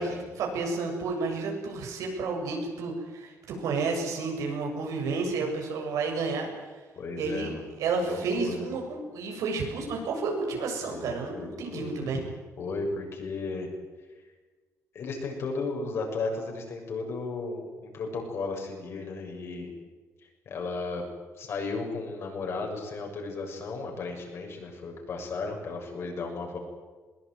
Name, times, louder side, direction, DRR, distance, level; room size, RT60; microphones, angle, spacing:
voice 1, 0.0-6.6 7.2-12.2, right 4 dB, 85° right, 2 dB, 7.6 m, -31 dB
voice 2, 7.0-7.7 8.0-8.7 10.8-11.0 11.3-12.2 12.6-13.7 14.9-19.7 20.5-21.0 21.4-26.6, left 3 dB, 50° left, 1 dB, 7.0 m, -34 dB
21.5 x 21.0 x 9.6 m, 1.4 s
cardioid pair, 155°, 6 cm